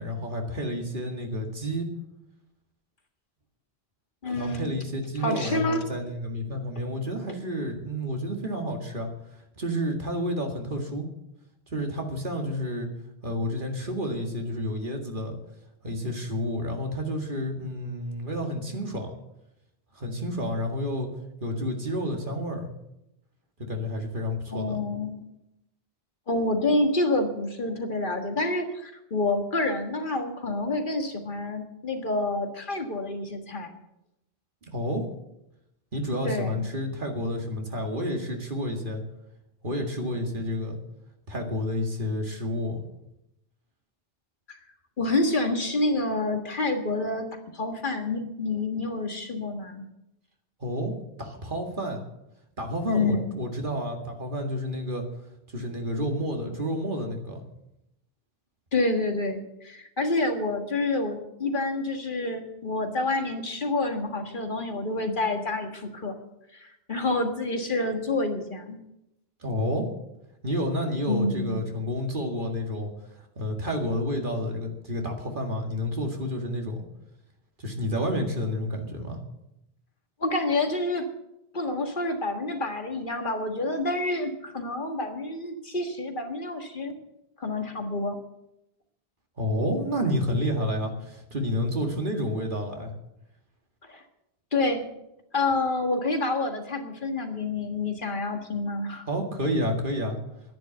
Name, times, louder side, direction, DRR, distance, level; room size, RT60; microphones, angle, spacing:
voice 1, 0.0-1.9 4.3-9.1 9.6-11.1 11.7-12.9 13.2-15.4 15.8-19.1 20.0-21.1 21.4-22.7 23.7-24.8 34.7-35.0 35.9-39.0 39.6-40.8 41.3-42.8 50.6-50.9 51.2-52.0 52.6-55.0 55.5-57.4 69.4-69.9 70.4-72.9 73.4-76.8 77.6-79.2 89.4-92.9 99.1-100.2, equal, 55° right, 3 dB, 2.2 m, -30 dB
voice 2, 4.2-4.7 5.2-5.8 24.5-25.2 26.3-33.7 36.2-36.6 44.5-44.6 45.0-47.3 47.5-49.9 52.9-53.4 58.7-66.1 66.5-68.8 71.1-71.6 80.2-81.1 81.5-86.9 87.4-88.2 93.8-94.0 94.5-94.9 95.3-99.1, left 2 dB, 55° left, 5 dB, 1.8 m, -28 dB
10.5 x 10.5 x 7.9 m, 0.85 s
omnidirectional pair, 1.1 m